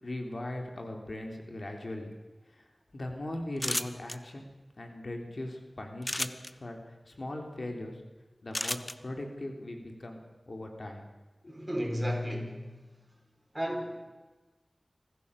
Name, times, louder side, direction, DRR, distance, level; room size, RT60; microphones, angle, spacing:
voice 1, 0.0-2.1 2.5-2.7 2.9-4.5 4.8-6.8 7.1-8.0 8.4-10.2 10.5-11.1 11.4-11.6, left 1 dB, 65° left, 3 dB, 3.5 m, -39 dB
sound 1, 3.6-4.2 6.0-6.5 8.5-8.9, left 1 dB, 25° left, 1.1 m, -32 dB
voice 2, 11.5-12.8 13.5-14.1, equal, 20° right, 2 dB, 5.6 m, -33 dB
24.5 x 15.5 x 7.1 m, 1.2 s
wide cardioid pair, 40°, 0 cm